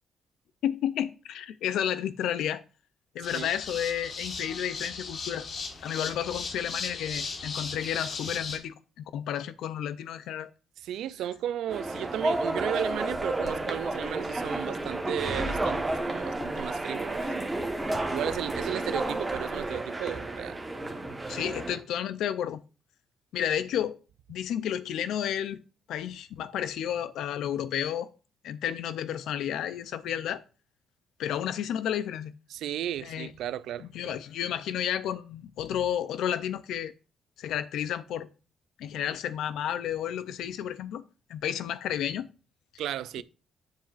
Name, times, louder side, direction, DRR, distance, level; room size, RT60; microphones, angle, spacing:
voice 1, 0.6-2.6 3.1-5.5 5.8-10.5 21.3-22.6 23.3-24.0 24.3-25.6 25.9-28.1 28.4-30.4 31.2-32.3 33.0-33.3 33.8-36.9 37.4-38.3 38.8-41.0 41.3-42.3 43.2-43.3, left 10 dB, 80° left, 0.5 m, -31 dB
sound 1, 3.2-8.6, left 4 dB, 55° left, 1.1 m, -37 dB
voice 2, 10.8-17.3 18.1-20.6 32.5-33.9 42.8-43.2, right 11 dB, 80° right, 0.3 m, -34 dB
sound 2, 11.7-21.8, right 2 dB, 15° right, 1.2 m, -31 dB
sound 3, 12.9-19.6, equal, 20° left, 1.6 m, -45 dB
7.4 x 7.2 x 2.5 m
cardioid pair, 90°, 0 cm